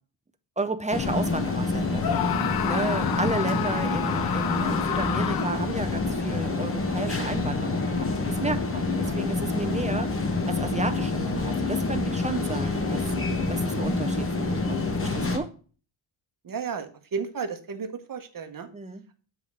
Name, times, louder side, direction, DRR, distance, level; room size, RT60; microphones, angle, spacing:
voice 1, 0.6-10.1 10.5-13.0 13.5-15.5 18.7-19.0, right 3 dB, 15° right, 9 dB, 0.4 m, -33 dB
sound 1, 0.9-15.4, left 3 dB, 25° left, 1.0 m, -27 dB
Screaming, 2.0-5.8, left 9 dB, 50° left, 0.5 m, -30 dB
voice 2, 16.4-18.7, right 5 dB, 40° right, 8 dB, 0.9 m, -34 dB
7.6 x 3.6 x 6.0 m, 0.39 s
wide cardioid pair, 155°, 50 cm